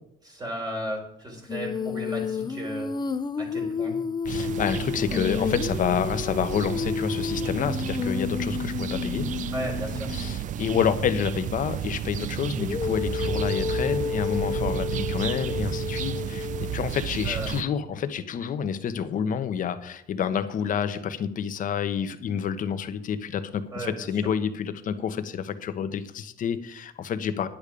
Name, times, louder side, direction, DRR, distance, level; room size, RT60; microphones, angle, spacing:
voice 1, 0.2-2.9 3.4-4.0 5.1-5.2 9.5-10.1 17.2-17.5 23.7-24.1, equal, 25° right, 0 dB, 4.5 m, -35 dB
Female singing, 1.5-10.4 12.6-16.8, left 6 dB, 25° left, 0.6 m, -31 dB
voice 2, 4.2-9.3 10.1-27.5, left 8 dB, 50° left, 10 dB, 1.1 m, -29 dB
sound 1, 4.3-17.6, right 10 dB, 50° right, 0.5 m, -32 dB
10.5 x 8.5 x 5.1 m, 0.75 s
cardioid pair, 110°, 17 cm